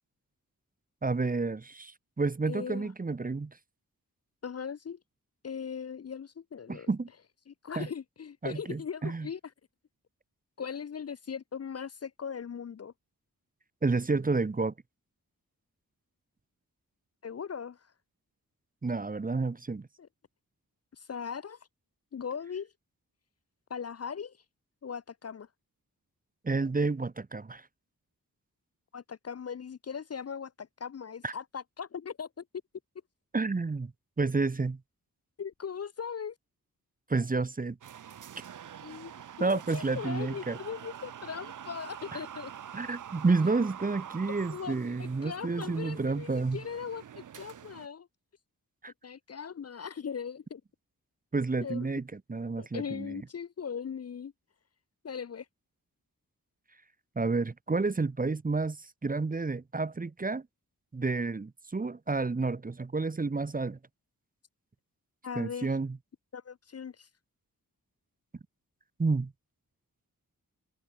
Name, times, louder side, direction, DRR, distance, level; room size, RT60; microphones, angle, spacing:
voice 1, 1.0-3.5 6.7-7.1 7.8-7.9 8.4-9.3 13.8-14.7 18.8-19.9 26.4-27.6 31.2-31.3 33.3-33.9 34.2-34.8 37.1-37.8 39.4-40.6 42.1-42.2 42.7-46.6 48.8-48.9 51.3-52.0 52.3-53.2 57.2-58.8 59.0-60.5 60.9-63.8 65.4-66.0 69.0-69.3, right 3 dB, 25° right, 0.8 m, -30 dB
voice 2, 2.5-2.9 4.4-5.0 5.4-6.9 7.5-9.4 10.6-12.9 17.2-17.9 20.0-20.1 20.9-21.6 22.1-22.7 23.7-24.4 24.8-25.5 28.9-32.4 35.4-36.4 38.8-39.1 39.4-42.5 44.5-48.1 49.0-50.6 51.6-51.9 52.6-54.3 55.0-55.5 65.2-65.7 66.3-67.1, left 7 dB, 45° left, 0.5 m, -39 dB
sound 1, 37.8-47.9, right 9 dB, 60° right, 0.6 m, -46 dB
wide cardioid pair, 120°, 35 cm